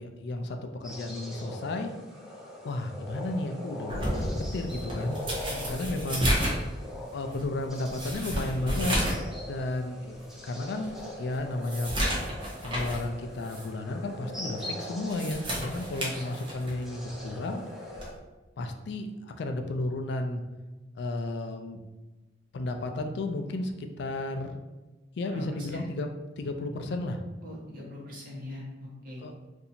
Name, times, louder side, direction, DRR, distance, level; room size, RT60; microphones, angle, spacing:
voice 1, 0.0-1.9 2.6-5.2 5.7-6.3 6.9-9.0 9.5-10.2 10.4-10.9 11.2-11.9 12.6-17.6 18.6-20.4 20.9-21.8 22.5-24.5 25.2-26.1 26.4-27.2 29.2-29.3, left 2 dB, 60° left, 5 dB, 0.4 m, -33 dB
sound 1, 0.8-18.1, left 1 dB, ahead, 0.5 m, -42 dB
sound 2, 3.9-9.3 9.6-9.7 10.3-10.4 10.8-13.1 13.4-13.7 14.9-16.9 17.9-18.2, equal, 25° right, 0.8 m, -32 dB
voice 2, 5.5-6.3 16.0-16.3 25.3-25.4 25.7-25.8 27.4-29.2, left 1 dB, 50° right, -5 dB, 1.2 m, -42 dB
2.8 x 2.6 x 4.1 m, 1.2 s
head